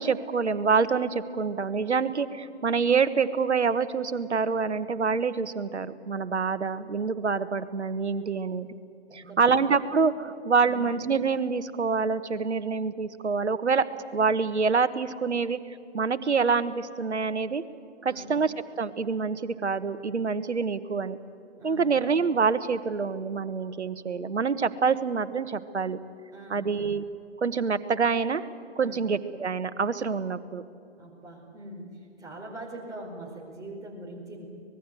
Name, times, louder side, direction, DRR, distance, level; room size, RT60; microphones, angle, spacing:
voice 1, 0.0-8.7 9.1-13.9 14.1-15.6 15.9-17.6 18.0-21.2 21.6-26.0 26.5-27.0 27.4-28.5 28.8-30.6, right 5 dB, 75° right, 13 dB, 1.4 m, -26 dB
voice 2, 9.1-9.5 10.6-10.8 18.0-18.3 21.6-21.9 26.3-26.7 28.8-29.0 31.0-34.5, right 1 dB, 10° right, -2 dB, 4.8 m, -42 dB
25.0 x 20.5 x 7.9 m, 2.7 s
figure-of-eight pair, 135°, 34 cm